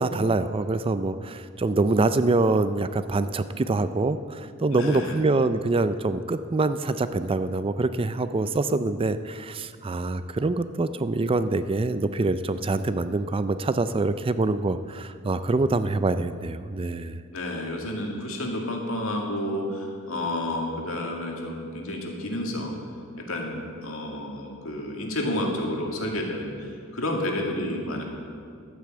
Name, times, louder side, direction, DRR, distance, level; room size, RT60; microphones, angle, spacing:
voice 1, 0.0-17.2, right 3 dB, 25° right, 12 dB, 0.4 m, -25 dB
voice 2, 4.7-5.2 17.3-22.8 23.3-28.0, left 1 dB, 70° left, 1 dB, 2.3 m, -30 dB
12.0 x 9.5 x 7.6 m, 2.3 s
head